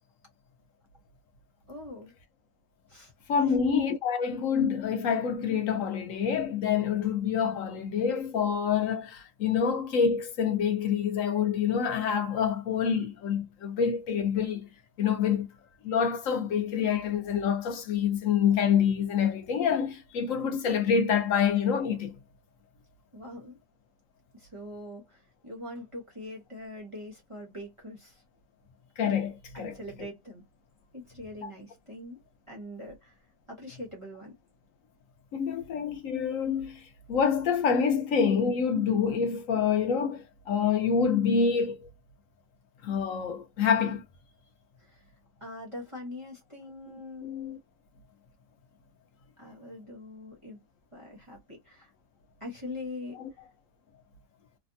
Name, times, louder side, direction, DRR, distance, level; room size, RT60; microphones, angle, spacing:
voice 1, 1.7-2.1 2.9-3.1 3.4-3.6 23.1-23.6 24.3-28.2 29.5-30.4 30.9-32.2 32.5-33.2 33.5-34.3 44.8-45.0 45.4-47.3 49.4-50.6 50.9-51.9 52.4-53.2, left 1 dB, 25° right, 0.7 m, -42 dB
voice 2, 3.3-14.7 15.0-15.5 15.8-22.2 29.0-29.7 31.4-31.5 35.3-36.8 37.1-41.9 42.8-44.0 47.2-47.6 53.1-53.2, left 7 dB, 60° left, 0.9 m, -27 dB
3.3 x 2.1 x 2.6 m
omnidirectional pair, 1.9 m